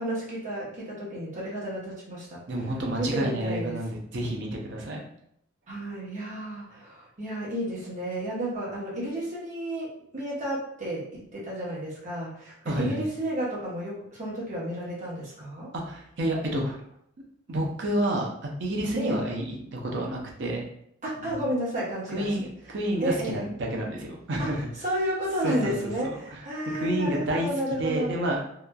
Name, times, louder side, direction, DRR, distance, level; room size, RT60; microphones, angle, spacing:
voice 1, 0.0-2.4 3.0-3.8 5.7-15.7 19.0-19.2 21.0-22.3 23.0-23.4 24.4-24.5 24.8-28.1, right 1 dB, 35° right, -7 dB, 1.0 m, -32 dB
voice 2, 2.5-5.0 12.7-13.1 15.7-16.8 17.5-20.6 21.2-21.4 22.1-24.7 25.4-25.7 26.0-26.1 26.7-28.4, right 1 dB, 60° right, 0 dB, 0.6 m, -29 dB
2.8 x 2.4 x 2.2 m, 0.72 s
head